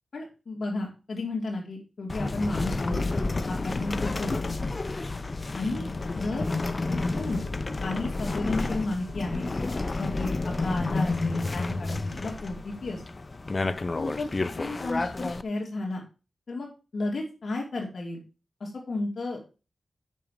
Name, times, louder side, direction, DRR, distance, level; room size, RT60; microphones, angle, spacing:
voice 1, 0.1-3.0 3.5-4.5 5.5-5.9 6.2-6.5 6.9-7.4 7.8-9.5 10.0-13.0 13.9-14.3 14.6-16.0 16.5-18.2 18.6-19.4, left 2 dB, 60° left, -1 dB, 2.7 m, -33 dB
sound 1, 2.1-15.4, left 3 dB, 30° left, 0.6 m, -30 dB
8.2 x 6.2 x 7.2 m, 0.33 s
wide cardioid pair, 125°, 0 cm